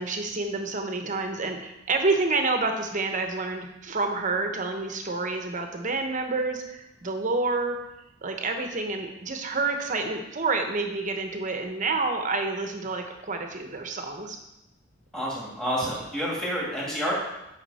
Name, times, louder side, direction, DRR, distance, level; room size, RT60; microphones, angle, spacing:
voice 1, 0.0-7.8 8.2-14.4, right 3 dB, 40° right, 5 dB, 0.9 m, -28 dB
voice 2, 15.1-17.1, equal, 5° left, -5 dB, 2.3 m, -29 dB
8.8 x 5.8 x 4.2 m, 0.90 s
head